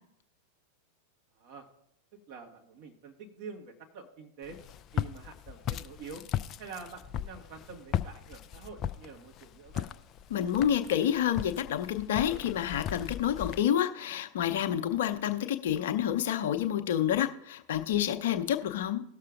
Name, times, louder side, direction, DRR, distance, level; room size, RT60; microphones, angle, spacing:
voice 1, 1.3-1.7 2.3-4.6 4.9-6.2 6.6-9.9, right 5 dB, 45° right, 1 dB, 1.5 m, -46 dB
Walk footsteps, 4.4-13.6, left 10 dB, 30° left, 0.4 m, -37 dB
voice 2, 10.3-19.0, left 10 dB, 55° left, 7 dB, 0.8 m, -29 dB
18.5 x 6.6 x 2.5 m, 0.77 s
figure-of-eight pair, 90°, 0 cm